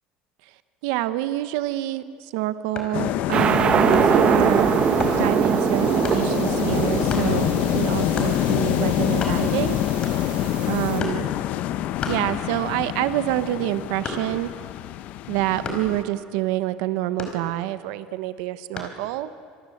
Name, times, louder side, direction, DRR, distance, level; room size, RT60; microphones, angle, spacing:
voice 1, 0.8-2.0 2.3-4.7 5.1-9.8 10.7-11.3 12.1-14.5 15.3-19.3, right 15 dB, 85° right, 12 dB, 1.0 m, -27 dB
sound 1, 2.6-3.0 3.9-4.3 5.0-5.2 6.0-6.3 7.1-7.3 8.2-8.4 8.8-8.9 9.1-9.6 10.0-10.4 11.0-11.3 12.0-12.8 13.1-14.5 15.6-16.0 17.2-17.9 18.8-19.0, left 4 dB, 35° left, 4.8 m, -33 dB
sound 2, 2.9-16.0, left 13 dB, 60° left, 0.9 m, -26 dB
sound 3, 3.3-11.0, right 8 dB, 35° right, 1.0 m, -23 dB
27.5 x 23.5 x 7.9 m, 2.2 s
cardioid pair, 140°, 3 cm